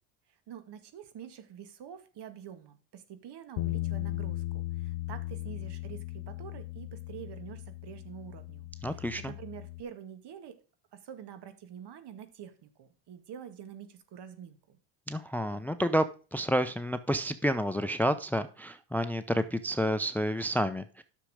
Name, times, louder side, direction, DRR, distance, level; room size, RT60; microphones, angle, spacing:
voice 1, 0.3-10.6 10.9-14.8, right 9 dB, 55° right, 10 dB, 1.9 m, -47 dB
Bass guitar, 3.6-9.8, left 18 dB, 75° left, 0.8 m, -37 dB
voice 2, 8.8-9.3 15.1-16.0 16.3-21.0, equal, 5° left, 12 dB, 0.6 m, -29 dB
10.0 x 6.7 x 4.9 m, 0.36 s
supercardioid pair, 85°, 48 cm